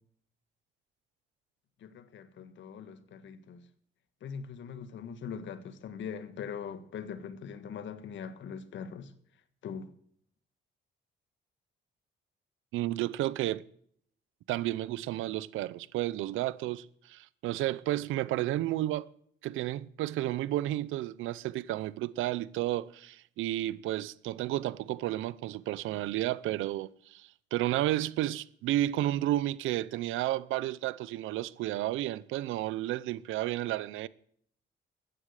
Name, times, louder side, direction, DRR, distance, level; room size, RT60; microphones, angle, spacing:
voice 1, 1.8-3.7 4.2-9.1 9.6-9.9, left 7 dB, 70° left, 1.6 m, -41 dB
voice 2, 12.7-13.6 14.5-19.1 19.4-34.1, right 15 dB, 90° right, 0.7 m, -32 dB
15.0 x 9.9 x 6.5 m
cardioid pair, 90°, 20 cm